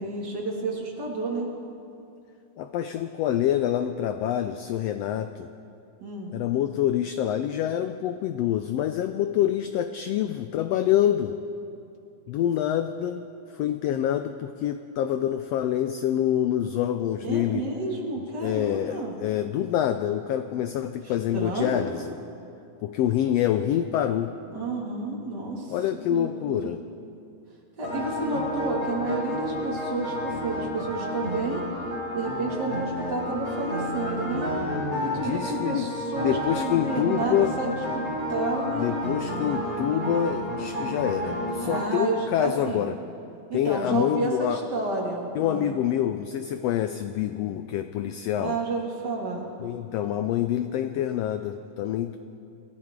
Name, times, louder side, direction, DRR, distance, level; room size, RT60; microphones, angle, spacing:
voice 1, 0.0-1.5 6.0-6.3 17.2-19.1 21.3-21.8 24.5-25.7 26.1-26.7 27.8-31.6 32.1-34.5 35.0-38.0 38.3-38.9 41.6-42.9 43.5-45.7 48.4-49.5, right 3 dB, 35° right, -2 dB, 2.7 m, -30 dB
voice 2, 2.6-5.5 6.3-11.4 12.3-13.2 13.5-17.7 18.2-22.2 22.8-24.3 25.7-26.8 35.2-35.9 36.2-37.5 38.7-43.0 43.5-44.6 45.3-48.6 49.6-52.2, left 11 dB, 80° left, 9 dB, 1.4 m, -26 dB
sound 1, 27.8-41.9, equal, 20° left, 4.6 m, -31 dB
27.5 x 14.0 x 3.7 m, 2.6 s
omnidirectional pair, 3.4 m